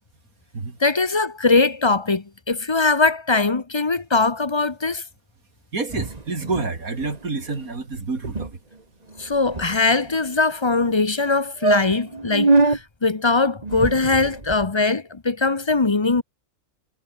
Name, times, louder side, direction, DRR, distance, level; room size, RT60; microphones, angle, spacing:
voice 1, 0.8-5.0 9.2-16.2, left 3 dB, 25° left, 0.8 m, -21 dB
voice 2, 5.7-8.5, right 3 dB, 80° right, 3.6 m, -28 dB
sound 1, 5.9-6.7 7.0-7.2 7.5-7.7 7.9-8.0 8.2-8.5 9.1-10.2 10.8-10.9 11.3-11.4 11.6-12.8 13.6-14.6, right 3 dB, 30° right, 2.0 m, -23 dB
omnidirectional pair, 1.5 m